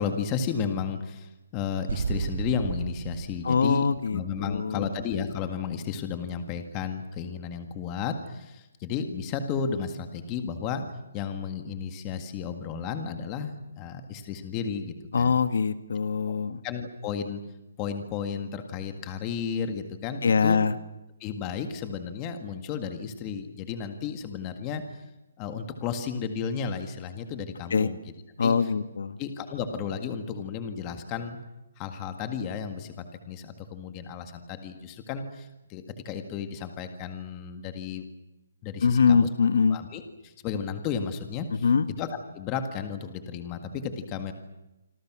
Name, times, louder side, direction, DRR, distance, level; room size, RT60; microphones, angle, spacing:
voice 1, 0.0-10.8 11.1-15.4 16.6-17.4 17.8-20.6 21.2-25.0 25.4-28.0 28.4-28.6 29.2-31.4 31.8-38.0 38.6-39.3 39.7-41.7 42.0-44.3, left 6 dB, 15° left, 7 dB, 1.8 m, -33 dB
sound 1, 1.9-4.8, right 5 dB, 60° right, 3.4 m, -33 dB
voice 2, 3.4-4.9 15.1-16.6 20.2-20.7 27.7-27.9 28.4-29.2 38.8-39.8 41.6-41.9, left 5 dB, 60° left, 11 dB, 1.7 m, -23 dB
27.0 x 26.5 x 6.2 m, 0.97 s
hypercardioid pair, 180°, 0 cm